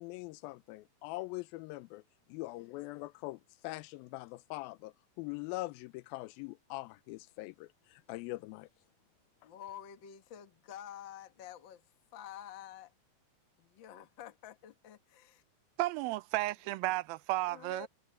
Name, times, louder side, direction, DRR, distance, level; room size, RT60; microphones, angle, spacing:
voice 1, 0.0-2.0 2.3-8.7, left 20 dB, 85° left, 2.4 m, -42 dB
voice 2, 9.4-11.8 12.1-12.9 13.6-15.4 17.5-17.9, left 10 dB, 50° left, 1.4 m, -49 dB
voice 3, 15.8-17.9, right 18 dB, 85° right, 2.4 m, -33 dB
omnidirectional pair, 4.3 m